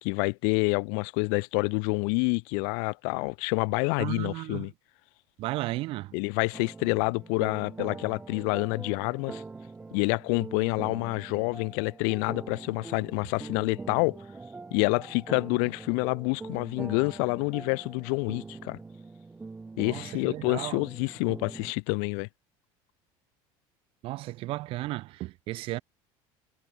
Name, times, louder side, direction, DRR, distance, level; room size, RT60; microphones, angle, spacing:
voice 1, 0.0-4.7 6.1-9.4 9.9-14.2 14.7-18.8 19.8-22.3, left 40 dB or more, 80° left, 0.7 m, -28 dB
voice 2, 4.0-4.7 5.4-6.2 19.8-20.8 24.0-25.8, right 18 dB, 55° right, 1.4 m, -34 dB
sound 1, 6.5-21.7, right 3 dB, 10° right, 3.0 m, -43 dB
cardioid pair, 160°, 12 cm